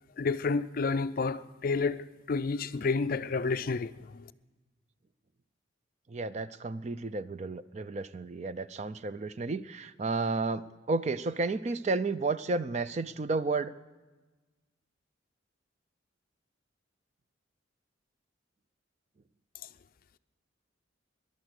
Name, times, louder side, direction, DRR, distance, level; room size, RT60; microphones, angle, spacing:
voice 1, 0.2-4.2, left 4 dB, 45° left, 0.4 m, -30 dB
voice 2, 6.1-13.7, right 3 dB, 35° right, 0.4 m, -32 dB
18.5 x 11.5 x 6.5 m
head